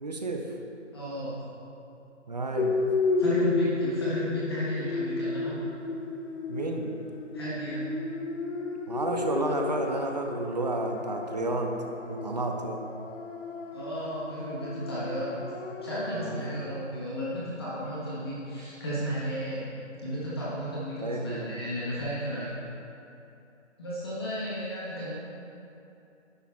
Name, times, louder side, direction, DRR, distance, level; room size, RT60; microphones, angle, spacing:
voice 1, 0.0-0.5 2.3-2.7 6.5-6.9 8.9-11.7 12.1-12.9 16.2-16.6 21.0-21.6 22.3-22.5, right 2 dB, 35° right, 3 dB, 0.6 m, -31 dB
voice 2, 0.9-1.5 3.2-5.7 7.3-7.9 13.7-15.4 15.8-19.7 20.0-22.5 23.8-25.1, equal, 20° left, -9 dB, 1.4 m, -33 dB
sound 1, 2.6-16.8, left 4 dB, 85° left, 0.9 m, -33 dB
10.5 x 6.1 x 3.5 m, 2.8 s
hypercardioid pair, 170°, 36 cm